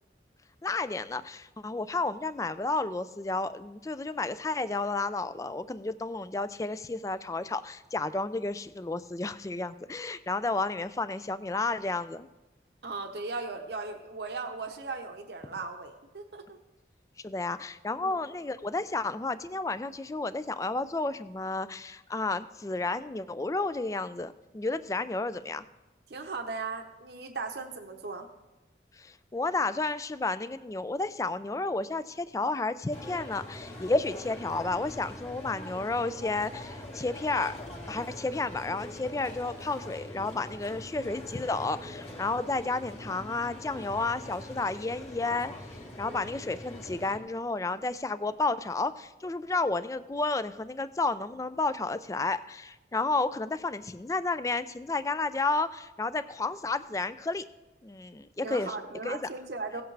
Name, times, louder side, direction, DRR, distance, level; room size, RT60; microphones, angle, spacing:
voice 1, 0.6-12.3 17.2-25.6 29.0-37.6 37.9-45.5 46.0-57.5 57.8-58.7 59.0-59.3, left 3 dB, 20° left, 14 dB, 0.3 m, -31 dB
voice 2, 12.8-16.6 18.0-18.2 26.1-28.3 46.0-46.3 58.4-59.8, right 3 dB, 70° right, 5 dB, 0.8 m, -37 dB
sound 1, 32.9-47.2, left 1 dB, 35° left, 1.7 m, -43 dB
17.0 x 7.9 x 3.3 m, 1.0 s
head